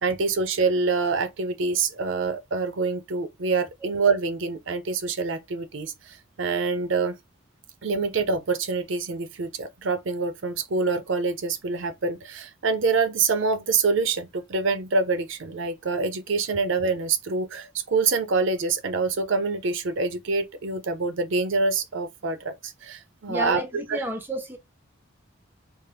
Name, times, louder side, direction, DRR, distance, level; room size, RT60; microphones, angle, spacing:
voice 1, 0.0-7.2 7.8-23.6 23.9-24.0, right 4 dB, 65° right, 0.6 m, -26 dB
voice 2, 23.3-24.6, right 1 dB, 10° right, 0.5 m, -31 dB
3.5 x 2.4 x 3.3 m
head